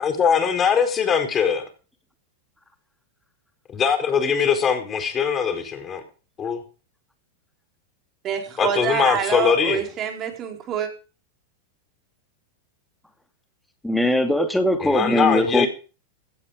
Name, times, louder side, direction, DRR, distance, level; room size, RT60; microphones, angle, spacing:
voice 1, 0.0-1.6 3.7-6.0 6.4-6.6 8.6-9.8 14.8-15.7, left 7 dB, 30° left, 7 dB, 4.5 m, -21 dB
voice 2, 8.2-10.9, right 8 dB, 35° right, 4 dB, 4.5 m, -26 dB
voice 3, 13.8-15.7, left 1 dB, 5° left, 7 dB, 2.4 m, -21 dB
16.5 x 9.8 x 5.1 m, 0.36 s
hypercardioid pair, 105°, 0 cm